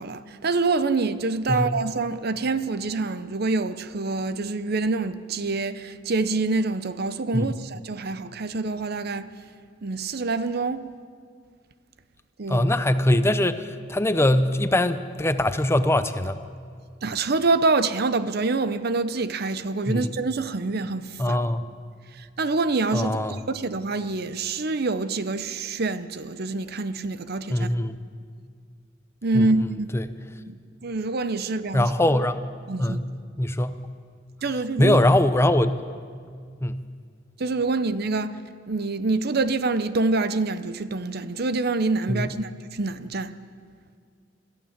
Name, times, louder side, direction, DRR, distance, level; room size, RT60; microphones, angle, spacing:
voice 1, 0.0-9.3 9.8-10.9 12.4-12.7 17.0-21.4 22.1-23.2 23.5-27.7 29.2-29.9 30.5-30.6 30.8-31.9 32.7-33.0 34.4-35.0 37.4-38.4 38.7-43.3, right 3 dB, 55° right, 0.8 m, -26 dB
voice 2, 1.5-1.8 7.3-7.5 12.5-16.4 19.9-20.1 21.2-21.6 22.9-23.4 27.5-28.0 29.3-29.5 29.9-30.1 31.7-32.4 32.8-33.1 33.4-33.8 34.8-35.7 36.6-36.8 42.1-42.3, left 1 dB, 15° left, 0.7 m, -22 dB
27.0 x 14.0 x 7.4 m
head